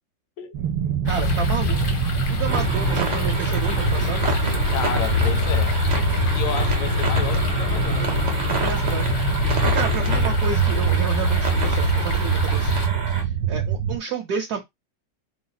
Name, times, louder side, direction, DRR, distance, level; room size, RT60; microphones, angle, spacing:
sound 1, 0.5-14.0, right 9 dB, 80° right, 1.3 m, -25 dB
voice 1, 1.0-1.8 2.3-4.3 8.5-12.7 13.1-14.6, right 6 dB, 65° right, 1.1 m, -31 dB
sound 2, 1.1-12.9, left 4 dB, 45° left, 0.6 m, -25 dB
sound 3, 2.5-13.2, right 3 dB, 50° right, 0.5 m, -30 dB
voice 2, 4.7-5.8 6.3-8.3, left 9 dB, 80° left, 1.4 m, -31 dB
4.4 x 2.0 x 3.9 m
omnidirectional pair, 2.0 m